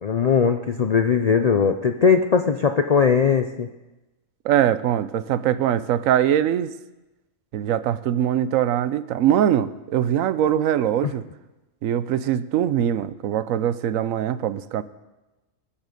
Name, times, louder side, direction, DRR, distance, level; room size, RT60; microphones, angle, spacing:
voice 1, 0.0-3.7, left 6 dB, 75° left, 7 dB, 0.3 m, -19 dB
voice 2, 4.4-6.7 7.5-11.2 11.8-14.8, right 10 dB, 80° right, 15 dB, 1.0 m, -22 dB
20.5 x 7.3 x 5.2 m, 1.1 s
omnidirectional pair, 1.4 m